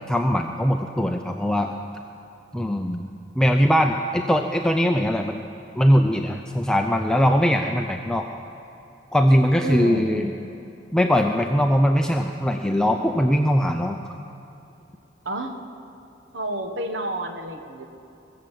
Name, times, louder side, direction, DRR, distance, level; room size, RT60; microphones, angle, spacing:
voice 1, 0.1-1.7 2.5-3.1 3.4-5.4 5.8-8.3 9.1-10.3 10.9-14.0, equal, 5° left, 3 dB, 0.5 m, -21 dB
voice 2, 9.6-10.3 15.2-15.6 16.3-17.9, right 1 dB, 70° right, 5 dB, 1.4 m, -30 dB
21.5 x 7.7 x 7.5 m, 2.9 s
head